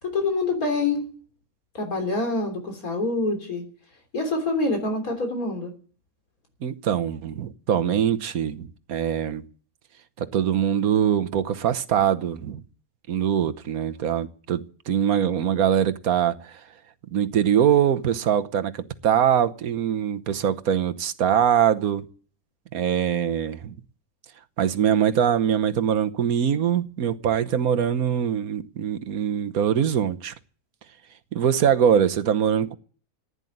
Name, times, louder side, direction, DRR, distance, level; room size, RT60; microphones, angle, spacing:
voice 1, 0.0-1.1 1.7-3.7 4.1-5.7, left 2 dB, 75° left, 3.9 m, -26 dB
voice 2, 6.6-9.4 10.2-12.6 13.1-16.6 17.1-22.1 22.7-23.7 24.6-30.3 31.3-32.8, right 9 dB, 80° right, 1.4 m, -23 dB
15.0 x 9.9 x 9.3 m
omnidirectional pair, 1.5 m